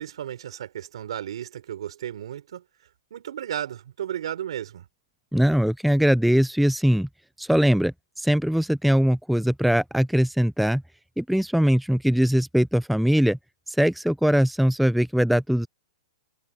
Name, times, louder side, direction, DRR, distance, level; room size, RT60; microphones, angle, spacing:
voice 1, 0.0-2.6 3.1-4.9, right 10 dB, 75° right, 3.5 m, -34 dB
voice 2, 5.3-7.1 7.4-10.8 11.2-13.4 13.7-15.7, equal, ahead, 0.3 m, -21 dB
hypercardioid pair, 130°, 3 cm